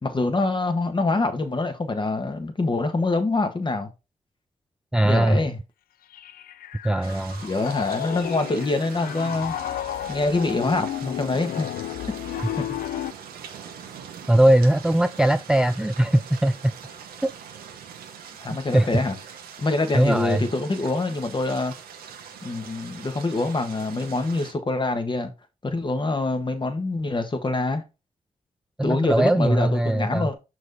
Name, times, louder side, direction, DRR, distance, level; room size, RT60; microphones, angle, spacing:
voice 1, 0.0-3.9 5.0-5.6 7.4-9.5 10.1-11.7 12.6-12.7 18.4-19.1 19.6-21.7 22.4-25.3 25.6-27.8 28.8-30.4, left 2 dB, 30° left, 1.5 m, -25 dB
voice 2, 4.9-5.4 6.8-7.4 14.3-16.7 17.2-17.3 18.7-18.9 19.9-20.4 28.8-30.3, right 1 dB, 5° right, 0.3 m, -20 dB
Piano, 6.1-13.1, left 12 dB, 75° left, 0.4 m, -32 dB
sound 1, 7.0-24.5, right 7 dB, 85° right, 1.0 m, -42 dB
6.2 x 4.7 x 4.1 m
cardioid pair, 60°, 15 cm